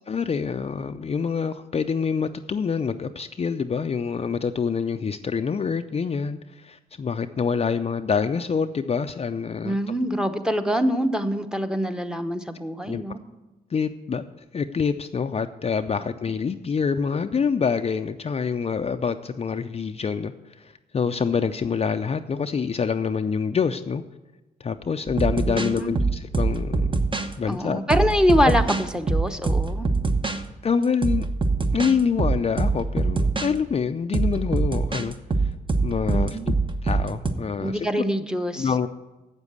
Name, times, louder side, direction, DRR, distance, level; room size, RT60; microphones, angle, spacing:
voice 1, 0.1-9.9 12.9-13.0 13.7-14.3 14.5-24.0 24.6-26.9 27.4-27.8 30.6-31.2 31.7-35.5 35.8-36.5 36.8-37.9 38.5-38.9, left 6 dB, 35° left, 8 dB, 0.5 m, -26 dB
voice 2, 9.6-13.2 25.5-26.0 27.5-29.9 36.1-36.5 37.6-38.9, equal, 5° right, 8 dB, 0.9 m, -24 dB
sound 1, 25.1-27.3 27.9-30.4 31.0-33.5 34.1-37.3, right 3 dB, 30° right, 1.0 m, -23 dB
8.1 x 7.2 x 8.1 m, 1.1 s
supercardioid pair, 55°, 18 cm